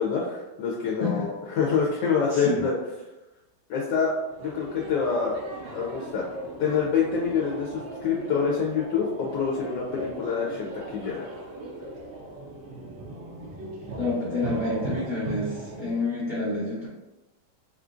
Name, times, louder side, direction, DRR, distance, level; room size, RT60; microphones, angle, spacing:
voice 1, 0.0-2.8 3.7-4.1 4.4-5.4 5.7-6.3 6.6-11.3, left 6 dB, 80° left, -4 dB, 1.2 m, -26 dB
voice 2, 2.3-2.6 14.0-16.9, left 2 dB, 50° left, -10 dB, 0.5 m, -28 dB
sound 1, 3.9-15.9, right 2 dB, 70° right, 0.7 m, -38 dB
3.7 x 2.5 x 2.4 m, 1.0 s
omnidirectional pair, 1.9 m